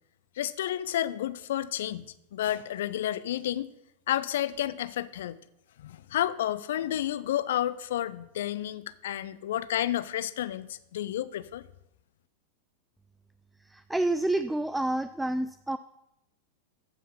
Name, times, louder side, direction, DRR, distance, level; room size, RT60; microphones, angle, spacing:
voice 1, 0.4-3.7 4.1-5.4 5.8-11.6, left 12 dB, 60° left, 16 dB, 0.6 m, -31 dB
voice 2, 13.7-15.8, right 1 dB, 5° right, 13 dB, 0.4 m, -28 dB
14.5 x 5.7 x 5.6 m, 0.86 s
figure-of-eight pair, 90°, 0 cm